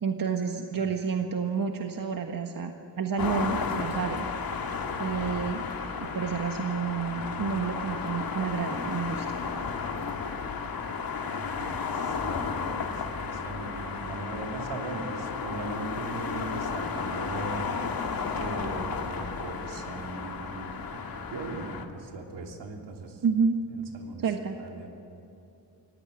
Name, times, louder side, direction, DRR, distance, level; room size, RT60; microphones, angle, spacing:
voice 1, 0.0-2.7 3.0-4.3 5.0-5.6 6.0-9.2 23.2-23.5 24.2-24.6, right 6 dB, 50° right, 4 dB, 1.6 m, -29 dB
sound 1, 3.2-21.9, left 5 dB, 55° left, 2.3 m, -33 dB
voice 2, 11.3-18.0 18.3-21.0 21.3-23.2 23.7-24.3 24.6-24.9, right 3 dB, 75° right, 2 dB, 3.2 m, -39 dB
24.5 x 17.0 x 9.9 m, 2.8 s
cardioid pair, 75°, 42 cm